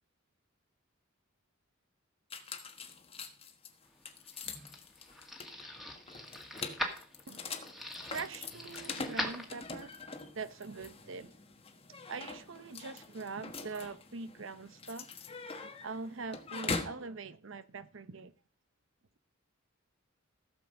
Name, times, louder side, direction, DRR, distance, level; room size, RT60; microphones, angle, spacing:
sound 1, 2.3-17.0, left 4 dB, 30° left, 1.2 m, -43 dB
sound 2, 4.0-10.0, equal, ahead, 1.9 m, -42 dB
voice 1, 7.3-7.6 8.1-9.9 10.3-11.4 12.1-15.1 15.6-18.3, right 4 dB, 65° right, 0.8 m, -43 dB
15.0 x 7.1 x 5.3 m
head